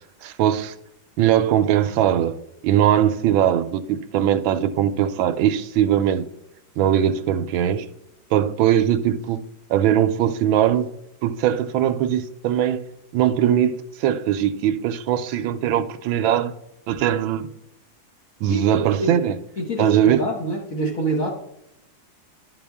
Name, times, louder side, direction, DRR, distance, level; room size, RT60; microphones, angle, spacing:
voice 1, 0.2-0.7 1.2-2.4 2.6-6.3 6.8-7.9 8.3-9.4 9.7-10.9 11.2-12.9 13.1-16.5 16.9-17.5 18.4-19.3 19.8-20.2, right 10 dB, 80° right, 1.3 m, -20 dB
voice 2, 18.5-19.2 19.6-21.3, right 1 dB, 45° left, 1.4 m, -26 dB
11.5 x 5.7 x 3.5 m
omnidirectional pair, 2.2 m